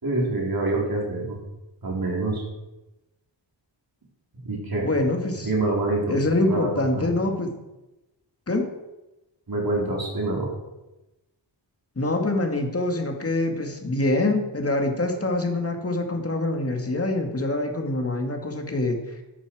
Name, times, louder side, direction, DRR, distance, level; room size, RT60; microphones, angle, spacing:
voice 1, 0.0-1.4 1.8-2.4 4.4-4.9 5.4-6.1 6.5-7.1 9.5-10.5, right 2 dB, 50° right, -2 dB, 4.2 m, -26 dB
voice 2, 4.8-5.5 6.1-7.6 8.5-8.7 12.0-19.1, left 2 dB, 30° left, 4 dB, 2.0 m, -25 dB
12.5 x 11.0 x 4.9 m, 1.0 s
wide cardioid pair, 110°, 44 cm